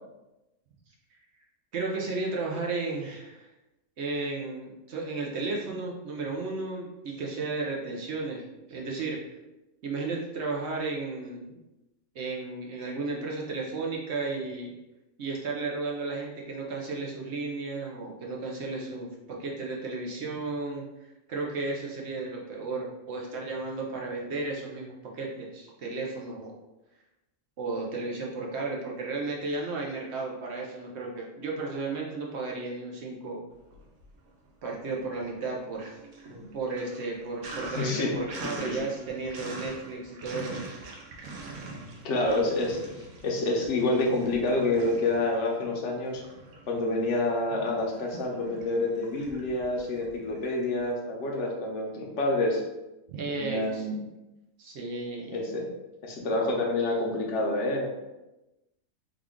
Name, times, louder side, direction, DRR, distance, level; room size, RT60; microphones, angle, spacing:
voice 1, 1.7-3.5 4.0-9.2 9.8-11.6 12.1-14.7 15.2-20.8 21.3-26.6 27.6-33.4 34.6-40.7 53.1-53.9 54.6-55.4, right 3 dB, 60° right, -2 dB, 0.7 m, -34 dB
Sink (filling or washing), 33.6-34.5 34.8-50.9, right 2 dB, 80° right, 1.0 m, -44 dB
voice 2, 37.8-38.2 38.4-38.8 42.0-46.2 46.7-52.6 53.2-54.0 55.3-55.7 56.0-57.9, left 2 dB, 60° left, -1 dB, 1.0 m, -28 dB
3.6 x 2.3 x 3.5 m, 1.0 s
omnidirectional pair, 1.5 m